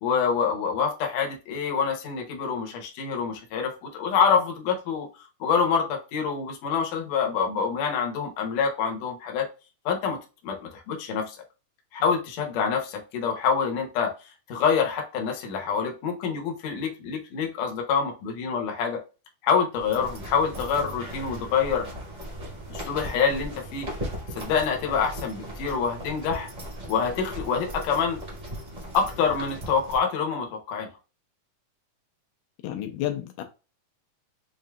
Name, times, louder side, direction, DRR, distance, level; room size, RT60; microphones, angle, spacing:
voice 1, 0.0-5.1 5.4-9.5 9.9-10.2 10.4-11.4 11.9-14.1 14.5-19.0 19.4-21.9 22.7-23.9 24.4-26.5 26.9-28.2 28.9-30.9, left 6 dB, 70° left, 1.9 m, -26 dB
sound 1, 19.7-30.0, equal, 70° right, 0.4 m, -38 dB
voice 2, 32.6-33.4, left 12 dB, 90° left, 2.2 m, -31 dB
6.2 x 2.6 x 2.3 m
omnidirectional pair, 3.7 m